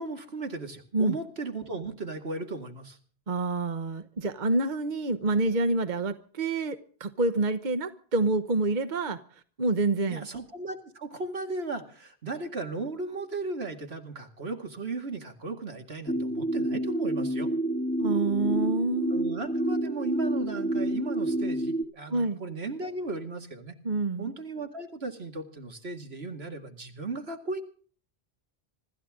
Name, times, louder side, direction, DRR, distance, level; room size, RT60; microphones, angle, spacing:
voice 1, 0.0-3.0 10.0-17.5 19.1-23.7 24.2-27.6, right 3 dB, 80° right, 2.4 m, -36 dB
voice 2, 3.3-9.2 9.6-10.3 18.0-19.3 22.1-22.4 23.8-24.3, right 2 dB, 50° right, 1.2 m, -27 dB
sound 1, 16.1-21.8, right 1 dB, 10° left, 1.2 m, -28 dB
26.0 x 13.5 x 3.7 m
omnidirectional pair, 1.0 m